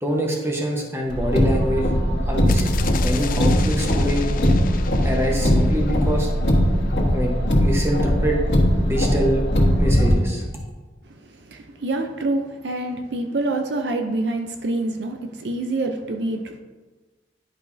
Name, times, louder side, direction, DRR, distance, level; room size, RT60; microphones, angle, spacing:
voice 1, 0.0-1.9 2.3-2.8 3.0-4.2 5.0-6.3 7.1-8.4 8.8-9.4 9.8-10.4, equal, 15° right, -1 dB, 1.1 m, -25 dB
Car, 1.1-10.1, equal, 75° left, 1.4 m, -20 dB
sound 1, 2.5-6.3, left 3 dB, 50° left, 0.4 m, -31 dB
voice 2, 11.1-16.6, right 2 dB, 70° right, 4 dB, 0.6 m, -26 dB
10.5 x 5.2 x 2.7 m, 1.3 s
head